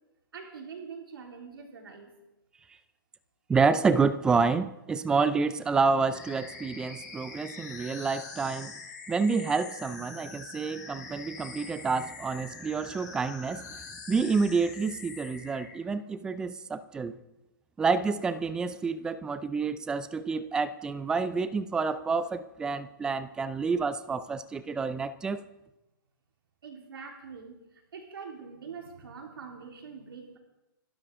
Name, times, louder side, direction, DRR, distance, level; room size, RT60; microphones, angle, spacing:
voice 1, 0.3-2.1 26.6-27.5 27.9-30.4, right 5 dB, 85° right, 1 dB, 3.7 m, -44 dB
voice 2, 3.5-8.7 9.1-13.8 14.1-17.2 17.8-25.5, right 4 dB, 5° right, 14 dB, 0.4 m, -28 dB
sound 1, 6.1-15.8, left 4 dB, 50° left, 5.4 m, -44 dB
28.0 x 12.0 x 3.7 m, 0.96 s
hypercardioid pair, 160°, 12 cm